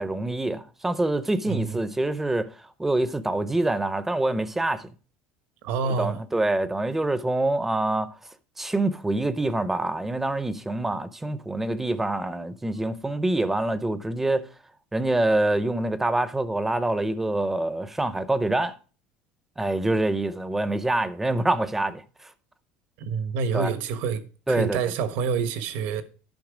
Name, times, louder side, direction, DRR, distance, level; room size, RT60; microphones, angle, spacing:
voice 1, 0.0-4.9 5.8-8.2 8.6-14.5 14.9-18.8 19.6-22.3 23.5-23.7 24.5-24.8, right 2 dB, 10° right, 0.6 m, -26 dB
voice 2, 5.6-6.2 23.0-24.2 24.5-26.0, right 6 dB, 70° right, 1.2 m, -27 dB
10.5 x 5.7 x 4.9 m
cardioid pair, 150°, 4 cm